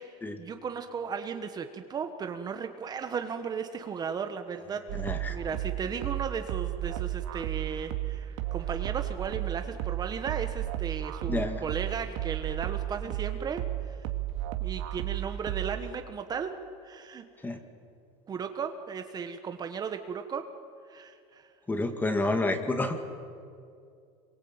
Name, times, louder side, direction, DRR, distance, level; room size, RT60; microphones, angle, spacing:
voice 1, 0.4-14.0 14.6-16.5 16.8-17.5 18.3-20.4 20.9-21.5, right 6 dB, 25° right, 7 dB, 1.4 m, -36 dB
sound 1, 4.9-15.9, right 14 dB, 80° right, 2.6 m, -33 dB
voice 2, 5.0-5.4 11.3-11.6 17.4-17.6 21.7-23.0, left 2 dB, 10° left, 6 dB, 2.3 m, -29 dB
27.0 x 23.5 x 8.9 m, 2.4 s
supercardioid pair, 140°, 15 cm